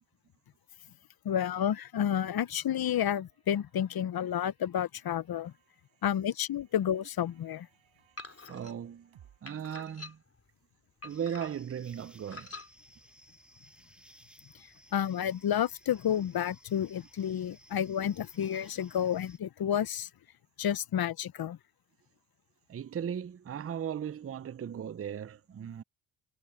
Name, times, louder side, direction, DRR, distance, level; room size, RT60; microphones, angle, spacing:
voice 1, 1.2-5.5 6.0-7.7 14.9-20.1 20.6-21.6, left 9 dB, 50° left, 0.8 m, -30 dB
sound 1, 2.6-9.9, right 10 dB, 75° right, 6.8 m, -67 dB
sound 2, 8.2-8.7 9.5-10.4 11.0-11.7 12.3-12.7, left 3 dB, 30° left, 4.2 m, -46 dB
voice 2, 8.5-9.1 9.4-10.2 11.0-12.5 22.7-25.8, right 8 dB, 30° right, 0.6 m, -37 dB
sound 3, 11.1-19.4, equal, ahead, 2.7 m, -59 dB
cardioid pair, 70°, 48 cm